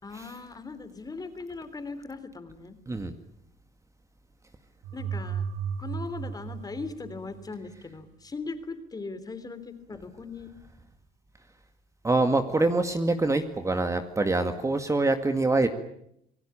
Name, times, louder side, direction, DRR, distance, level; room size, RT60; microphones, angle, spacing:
voice 1, 0.0-2.8 4.9-5.5 5.8-10.5, left 4 dB, 20° left, 10 dB, 3.4 m, -39 dB
sound 1, 4.8-7.7, right 7 dB, 85° right, 2.0 m, -35 dB
voice 2, 12.0-15.7, right 2 dB, 20° right, 8 dB, 2.0 m, -25 dB
28.0 x 19.0 x 8.8 m, 0.74 s
cardioid pair, 110°, 17 cm